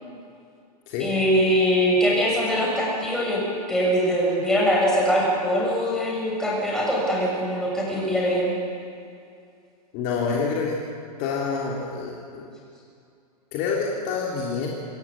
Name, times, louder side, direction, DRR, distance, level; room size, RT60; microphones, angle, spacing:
voice 1, 1.0-3.4 3.7-8.5, equal, 5° left, -5 dB, 7.3 m, -22 dB
voice 2, 9.9-10.8 11.2-12.5 13.5-14.7, left 5 dB, 35° left, -2 dB, 3.4 m, -27 dB
27.0 x 14.0 x 8.9 m, 2.4 s
hypercardioid pair, 150°, 21 cm